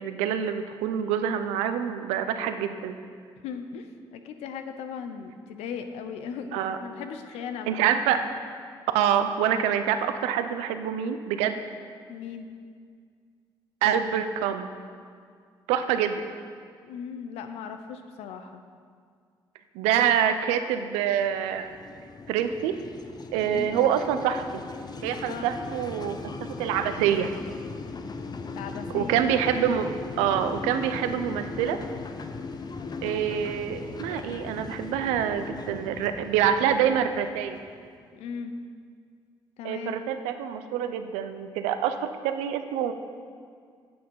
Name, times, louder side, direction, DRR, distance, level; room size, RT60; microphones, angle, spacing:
voice 1, 0.0-2.9 6.5-6.8 7.7-8.2 8.9-11.6 13.8-14.7 15.7-16.2 19.7-21.8 22.3-22.8 23.3-24.6 25.0-27.3 28.9-31.8 33.0-37.6 39.6-42.9, right 9 dB, 90° right, 9 dB, 0.5 m, -26 dB
voice 2, 3.4-7.9 12.1-12.5 16.8-18.6 23.4-23.7 25.3-25.5 28.5-29.2 38.1-38.5 39.6-40.0, left 6 dB, 85° left, 7 dB, 0.7 m, -38 dB
sound 1, 21.2-37.9, left 4 dB, 40° left, 0.7 m, -38 dB
8.6 x 7.6 x 5.4 m, 2.1 s
supercardioid pair, 55°, 11 cm